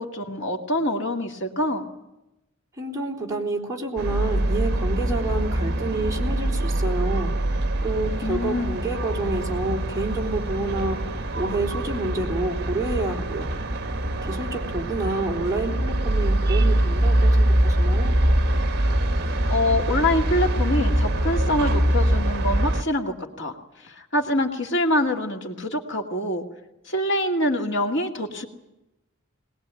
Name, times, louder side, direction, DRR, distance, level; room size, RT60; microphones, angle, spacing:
voice 1, 0.0-1.9 8.2-8.8 19.5-23.6 23.8-26.4 26.9-28.5, left 1 dB, 55° left, 3 dB, 2.4 m, -25 dB
voice 2, 2.8-13.5 13.8-18.2, right 2 dB, 15° right, -1 dB, 4.1 m, -29 dB
sound 1, 4.0-22.8, right 1 dB, 50° right, 1.7 m, -23 dB
21.0 x 20.5 x 9.2 m, 0.92 s
head